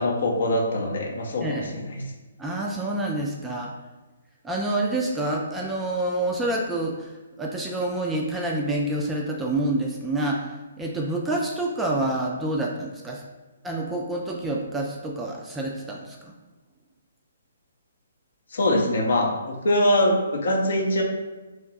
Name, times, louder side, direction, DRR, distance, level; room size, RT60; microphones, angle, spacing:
voice 1, 0.0-2.0 18.5-21.0, left 1 dB, 55° left, 1 dB, 0.6 m, -23 dB
voice 2, 2.4-3.7 4.4-7.1 7.4-13.2 13.6-16.3, right 1 dB, 10° right, -1 dB, 0.3 m, -27 dB
3.0 x 2.2 x 3.9 m, 1.2 s
figure-of-eight pair, 130°, 0 cm